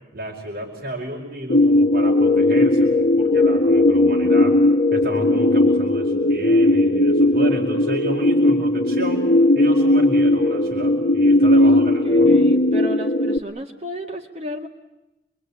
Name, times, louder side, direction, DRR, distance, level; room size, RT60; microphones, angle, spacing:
voice 1, 0.1-4.6 4.9-9.2 9.5-12.3, right 1 dB, 55° right, -2 dB, 5.0 m, -31 dB
sound 1, 1.5-13.4, left 1 dB, 55° left, 1.2 m, -17 dB
voice 2, 11.6-14.7, right 1 dB, 35° right, 2 dB, 1.9 m, -32 dB
28.0 x 23.0 x 8.7 m, 0.98 s
head